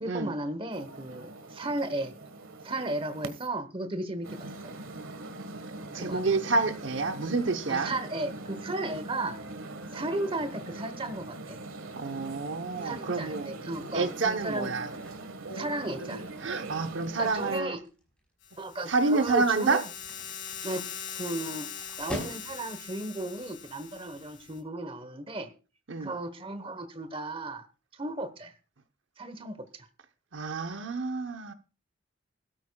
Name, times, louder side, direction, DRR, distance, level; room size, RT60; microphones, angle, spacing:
voice 1, 0.0-2.1 2.6-4.5 5.9-6.3 7.7-9.4 9.9-11.6 12.8-14.7 15.5-16.2 17.2-17.8 18.6-19.8 20.6-20.8 21.2-21.7 22.0-25.5 26.0-27.6 27.9-28.5 29.2-29.9, right 1 dB, 25° right, 1.0 m, -35 dB
sound 1, 0.7-3.5 4.2-17.6, right 2 dB, 80° right, 1.5 m, -42 dB
voice 2, 5.9-7.9 12.0-13.5 13.9-14.9 16.4-17.8 18.9-19.8 25.9-26.1 30.3-31.5, right 3 dB, 60° right, 0.9 m, -28 dB
sound 2, 14.9-22.9, equal, 5° left, 5.3 m, -47 dB
sound 3, 18.4-24.6, left 7 dB, 65° left, 7.6 m, -42 dB
20.5 x 13.0 x 2.3 m
head